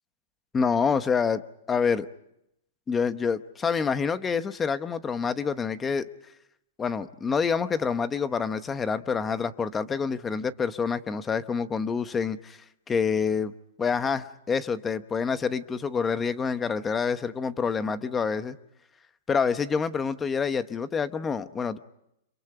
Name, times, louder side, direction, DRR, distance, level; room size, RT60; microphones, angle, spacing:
voice 1, 0.5-1.4 1.7-2.1 2.9-6.0 6.8-12.6 12.9-13.5 13.8-18.6 19.3-21.8, left 5 dB, 10° left, 12 dB, 0.9 m, -27 dB
30.0 x 27.0 x 4.9 m, 0.80 s
supercardioid pair, 165°, 0 cm